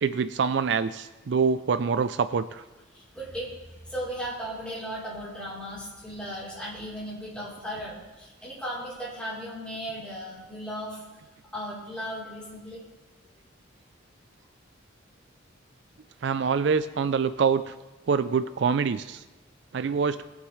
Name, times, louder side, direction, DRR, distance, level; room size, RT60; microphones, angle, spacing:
voice 1, 0.0-2.6 16.2-17.7 18.1-19.2 19.7-20.2, right 5 dB, 60° right, 13 dB, 0.4 m, -25 dB
voice 2, 2.9-3.5 3.9-11.0 11.5-12.8, equal, 5° left, -8 dB, 3.6 m, -36 dB
21.0 x 7.4 x 3.2 m, 1.1 s
head